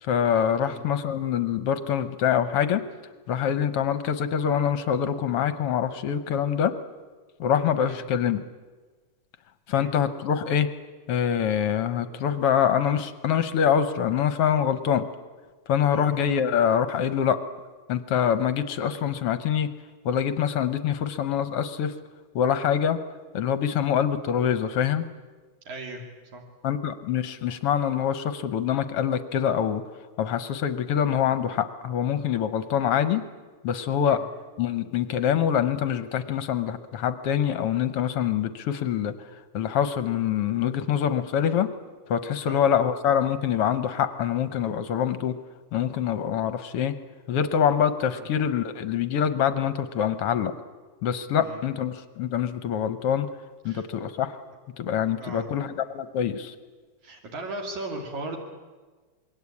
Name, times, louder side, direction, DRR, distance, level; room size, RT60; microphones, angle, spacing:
voice 1, 0.0-2.8 3.3-6.7 7.4-8.4 9.7-10.7 11.1-15.0 15.7-17.4 17.9-19.7 20.0-21.9 22.3-23.0 23.3-25.0 26.6-29.8 30.2-33.2 33.6-34.3 34.6-39.3 39.5-41.7 42.1-45.3 45.7-46.9 47.3-50.5 51.0-53.3 53.6-54.4 54.8-56.5, left 8 dB, 65° left, 12 dB, 1.5 m, -25 dB
voice 2, 25.7-26.0 26.3-26.4 34.0-34.2 42.4-42.6 48.2-48.3 51.4-51.6 53.7-53.8 54.5-54.6 55.2-55.5 57.0-58.4, right 2 dB, 70° right, 1 dB, 3.9 m, -37 dB
26.5 x 22.0 x 8.5 m, 1.4 s
omnidirectional pair, 3.5 m